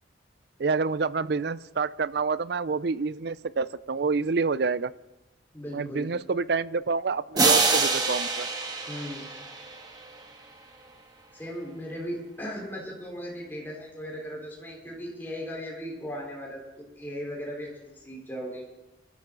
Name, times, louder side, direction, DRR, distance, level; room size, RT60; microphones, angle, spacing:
voice 1, 0.6-4.9 5.7-8.5, right 4 dB, 60° right, 17 dB, 0.5 m, -28 dB
voice 2, 5.5-6.1 8.9-9.3 11.3-18.6, equal, 10° left, -3 dB, 4.3 m, -37 dB
sound 1, 7.4-10.2, right 3 dB, 20° right, 1.6 m, -25 dB
25.0 x 12.5 x 3.9 m, 1.0 s
head